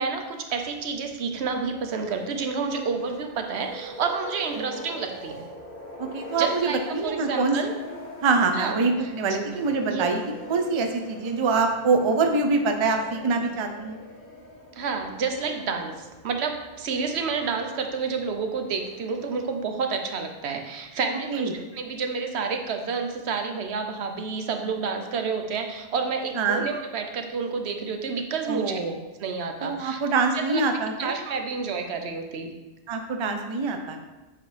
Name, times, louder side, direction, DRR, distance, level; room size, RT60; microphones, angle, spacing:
voice 1, 0.0-5.4 6.4-7.7 8.5-9.4 9.9-10.0 14.7-28.8 29.2-30.6 31.0-32.5, right 5 dB, 80° right, 5 dB, 0.9 m, -30 dB
sound 1, 0.5-19.6, equal, 50° left, 1.3 m, -43 dB
voice 2, 6.0-7.6 8.2-10.2 10.5-14.0 21.3-21.5 26.4-26.6 28.5-29.0 29.6-31.1 32.9-34.0, right 4 dB, 40° right, 5 dB, 0.4 m, -24 dB
8.0 x 3.9 x 3.2 m, 1.1 s
omnidirectional pair, 1.1 m